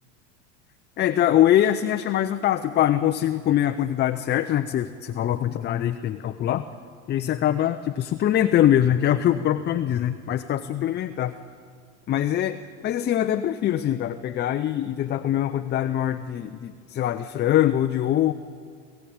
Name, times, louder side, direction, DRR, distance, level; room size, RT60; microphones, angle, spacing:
voice 1, 1.0-6.6 7.1-11.4 12.1-12.6 12.8-18.3, left 11 dB, 30° left, 8 dB, 0.7 m, -23 dB
21.0 x 15.5 x 8.8 m, 2.1 s
supercardioid pair, 115°, 36 cm